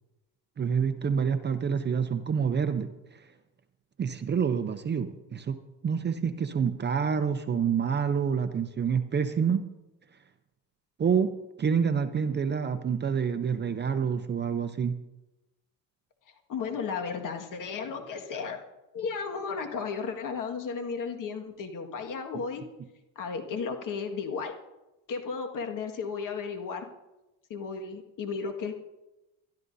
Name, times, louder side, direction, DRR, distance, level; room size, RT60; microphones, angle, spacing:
voice 1, 0.6-2.9 4.0-5.6 5.8-9.7 11.0-11.3 11.6-15.0, right 6 dB, 25° right, 9 dB, 0.7 m, -27 dB
voice 2, 16.5-18.6 18.9-22.6 23.2-24.5 25.1-26.9 27.5-28.7, left 5 dB, 50° left, 4 dB, 1.9 m, -34 dB
22.0 x 12.5 x 2.7 m, 1.0 s
cardioid pair, 125°, 41 cm